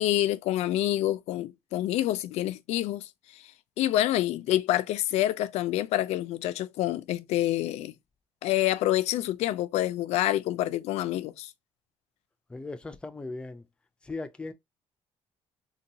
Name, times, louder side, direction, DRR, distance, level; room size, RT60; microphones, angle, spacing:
voice 1, 0.0-3.4 3.8-7.9 8.4-11.5, left 14 dB, 80° left, 0.4 m, -27 dB
voice 2, 12.5-13.7 14.0-14.5, left 3 dB, 10° left, 0.3 m, -38 dB
3.9 x 2.2 x 2.6 m
cardioid pair, 170°, 11 cm